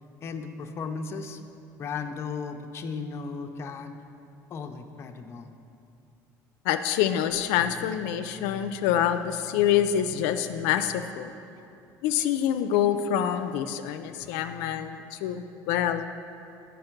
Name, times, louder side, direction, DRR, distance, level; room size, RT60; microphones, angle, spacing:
voice 1, 0.2-1.4 1.8-4.0 4.5-5.5, left 5 dB, 35° left, 5 dB, 0.5 m, -35 dB
voice 2, 6.7-11.3 12.0-16.0, left 10 dB, 85° left, 9 dB, 0.3 m, -26 dB
7.7 x 5.1 x 5.8 m, 2.7 s
cardioid pair, 135°, 8 cm